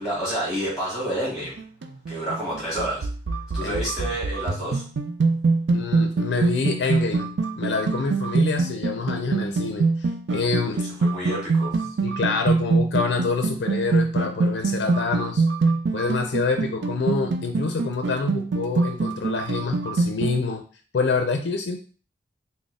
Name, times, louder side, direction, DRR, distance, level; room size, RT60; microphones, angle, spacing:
voice 1, 0.0-1.6 2.1-3.1 3.5-4.8 10.7-11.8, right 1 dB, 5° right, -6 dB, 1.5 m, -29 dB
sound 1, 1.4-20.4, right 3 dB, 80° right, 0.4 m, -24 dB
voice 2, 5.7-7.3 7.6-10.8 12.0-15.4 15.9-20.6 20.9-21.8, left 4 dB, 75° left, 5 dB, 0.4 m, -26 dB
3.9 x 2.0 x 3.6 m, 0.39 s
head